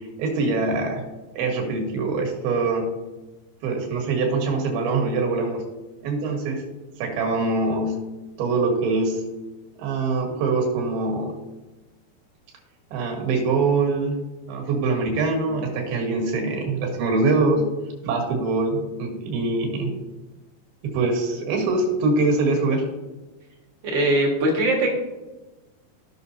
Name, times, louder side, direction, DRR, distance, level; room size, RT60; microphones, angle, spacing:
voice 1, 0.2-1.0 1.3-2.9 3.6-5.6 6.0-6.6 7.0-7.9 8.4-9.2 9.8-11.4 12.9-14.2 14.5-17.6 18.0-19.9 20.8-22.8, right 3 dB, 75° right, 1 dB, 3.4 m, -23 dB
voice 2, 23.8-25.0, right 1 dB, 50° right, -1 dB, 1.5 m, -21 dB
14.5 x 6.1 x 2.7 m, 1.1 s
omnidirectional pair, 4.5 m